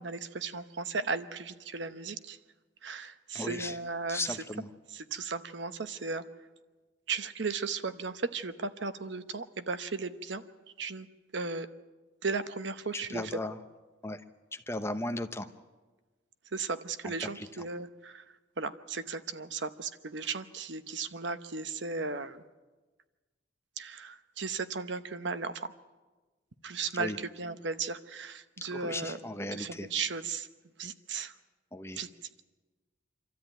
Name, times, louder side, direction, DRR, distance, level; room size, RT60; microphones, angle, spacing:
voice 1, 0.0-2.4 2.8-4.4 4.9-6.2 7.1-10.5 10.8-11.1 11.3-11.7 12.2-13.3 16.5-22.4 23.8-25.7 26.6-29.2 29.5-30.5 30.8-31.3 31.9-32.1, right 4 dB, 70° right, 11 dB, 0.9 m, -36 dB
voice 2, 3.3-3.8 4.1-4.7 12.9-13.6 14.0-14.2 14.5-15.5 17.0-17.5 27.0-27.2 28.7-29.9 31.7-32.0, left 2 dB, 15° left, 8 dB, 0.8 m, -36 dB
26.0 x 13.5 x 9.0 m, 1.3 s
head